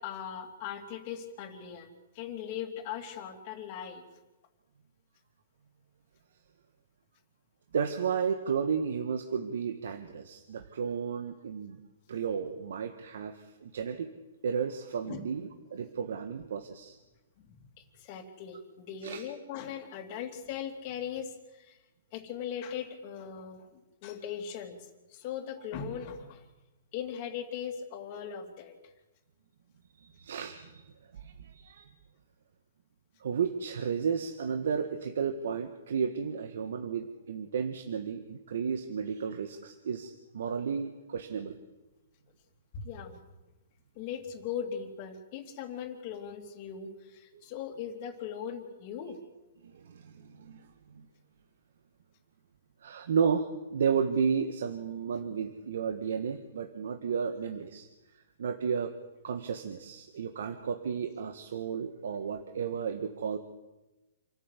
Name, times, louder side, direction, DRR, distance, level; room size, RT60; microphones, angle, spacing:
voice 1, 0.0-1.9 2.1-4.1 15.0-15.3 17.4-21.8 22.1-23.7 24.0-26.4 26.9-28.7 42.7-43.2 44.0-49.2, left 8 dB, 35° left, 5 dB, 2.8 m, -39 dB
voice 2, 7.7-11.8 12.1-14.1 14.4-17.0 19.0-19.2 30.0-30.8 31.1-31.9 33.2-41.6 47.3-47.4 49.6-51.1 52.8-57.9 58.1-58.9 59.2-63.4, right 6 dB, 75° right, 7 dB, 1.6 m, -33 dB
27.5 x 13.0 x 8.4 m, 1.1 s
hypercardioid pair, 160°, 0 cm